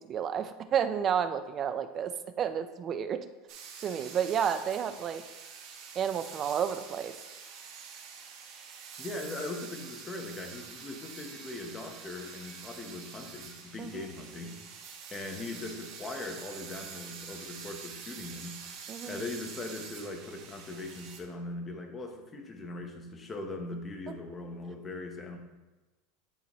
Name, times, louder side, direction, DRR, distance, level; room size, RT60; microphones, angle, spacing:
voice 1, 0.0-2.1 2.4-3.2 3.8-5.2 6.0-7.1 13.8-13.9 18.9-19.2, right 8 dB, 30° right, 11 dB, 0.4 m, -31 dB
sound 1, 3.5-21.2, right 6 dB, 50° right, 1.0 m, -46 dB
voice 2, 9.0-14.6 15.1-18.6 19.0-25.4, left 2 dB, 15° left, 3 dB, 0.9 m, -40 dB
10.5 x 4.0 x 3.0 m, 1.1 s
supercardioid pair, 150°, 0 cm